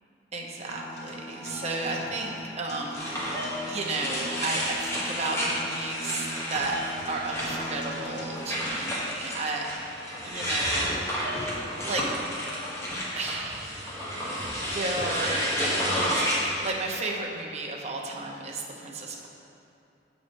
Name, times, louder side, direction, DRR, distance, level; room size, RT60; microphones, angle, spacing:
voice 1, 0.3-6.8 7.1-9.7 10.2-12.0 13.1-13.8 14.7-19.3, right 2 dB, 40° right, -1 dB, 0.7 m, -33 dB
Acoustic guitar, 0.7-8.7, equal, 80° left, 1.4 m, -39 dB
sound 1, 3.0-16.7, equal, 15° left, 1.1 m, -31 dB
7.1 x 4.0 x 5.2 m, 2.7 s
head